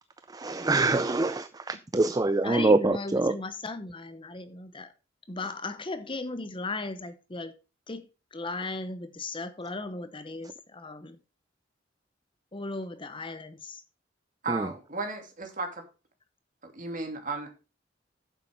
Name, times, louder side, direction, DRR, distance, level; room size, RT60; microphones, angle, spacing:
voice 1, 0.3-3.4 14.5-14.7, right 2 dB, 20° right, 0.5 m, -25 dB
voice 2, 2.4-4.9 5.3-7.6 7.9-11.2 12.5-13.8, left 3 dB, 25° left, 0.9 m, -36 dB
voice 3, 14.4-15.8 16.6-17.5, right 3 dB, 45° right, 2.9 m, -34 dB
9.5 x 7.5 x 5.4 m
head